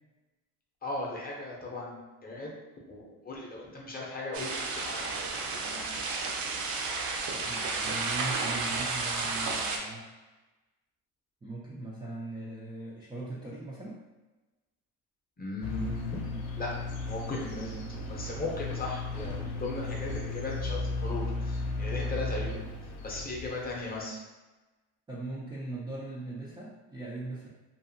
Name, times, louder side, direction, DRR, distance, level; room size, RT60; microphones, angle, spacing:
voice 1, 0.8-1.9 2.2-2.5 2.9-5.8 15.4-16.3 16.6-22.6 23.0-24.2, left 2 dB, 20° left, -3 dB, 0.7 m, -37 dB
sound 1, 4.3-9.8, right 3 dB, 60° right, 0.6 m, -32 dB
voice 2, 7.3-10.1 11.4-14.0 25.1-27.5, right 2 dB, 10° right, -6 dB, 0.3 m, -40 dB
sound 2, 15.6-24.0, left 2 dB, 65° left, 0.7 m, -35 dB
2.7 x 2.4 x 2.6 m, 1.1 s
cardioid pair, 100°, 41 cm